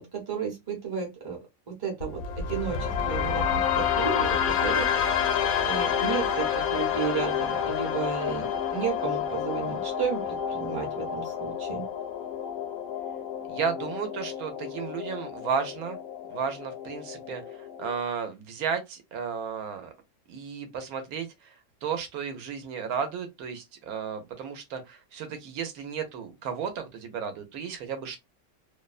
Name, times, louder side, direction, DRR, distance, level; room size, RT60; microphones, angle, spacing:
voice 1, 0.0-1.4 1.7-4.8 5.6-10.2 10.5-11.8, right 6 dB, 20° right, 0.7 m, -33 dB
sound 1, 2.0-18.0, left 8 dB, 75° left, 1.0 m, -29 dB
voice 2, 13.5-16.0 16.3-19.9 20.3-21.5 21.8-28.2, right 6 dB, 75° right, 1.1 m, -33 dB
2.7 x 2.1 x 2.3 m
omnidirectional pair, 1.6 m